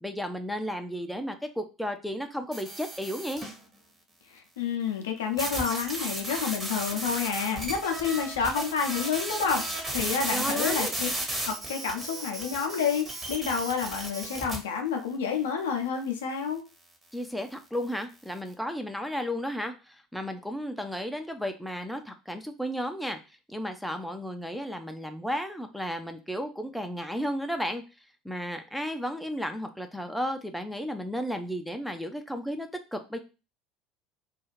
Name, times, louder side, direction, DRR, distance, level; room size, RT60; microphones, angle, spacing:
voice 1, 0.0-3.4 10.3-11.0 17.1-23.2 23.5-27.8 28.2-33.2, equal, ahead, 6 dB, 0.4 m, -33 dB
sound 1, 2.5-3.6 5.4-14.6, right 1 dB, 20° right, 0.9 m, -34 dB
voice 2, 4.3-11.1 11.4-16.6, left 6 dB, 70° left, 4 dB, 0.5 m, -29 dB
2.4 x 2.3 x 3.0 m, 0.31 s
figure-of-eight pair, 65°, 0 cm